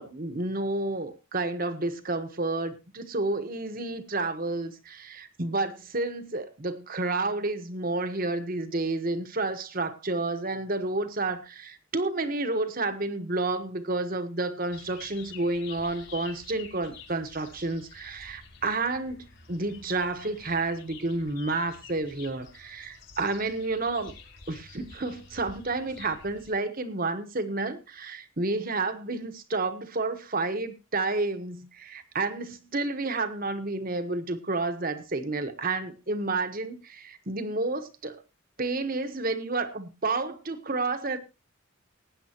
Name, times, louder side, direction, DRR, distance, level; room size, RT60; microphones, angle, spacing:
voice 1, 0.0-24.1 24.5-38.2 38.6-41.2, right 2 dB, 45° right, 1.2 m, -30 dB
sound 1, 14.7-26.5, left 5 dB, 65° left, 4.5 m, -49 dB
19.5 x 9.5 x 2.9 m
head